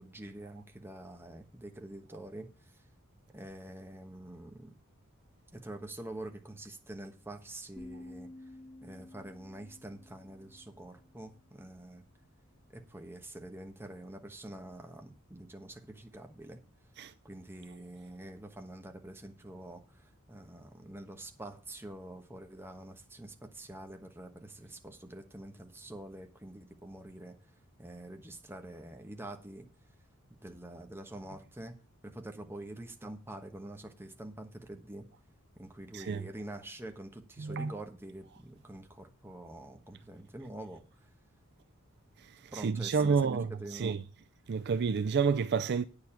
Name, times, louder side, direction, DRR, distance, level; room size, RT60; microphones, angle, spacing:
voice 1, 0.0-2.5 3.3-4.7 5.5-8.3 8.8-12.0 12.7-16.6 17.2-27.4 27.8-29.7 30.4-31.7 32.0-35.1 35.6-40.8 42.5-43.2 43.6-44.1, right 1 dB, 10° right, 1.2 m, -46 dB
sound 1, 7.8-11.6, left 1 dB, 10° left, 1.7 m, -52 dB
voice 2, 37.4-37.7 42.5-44.0 44.5-45.8, right 5 dB, 50° right, 0.4 m, -29 dB
9.4 x 6.9 x 5.7 m
head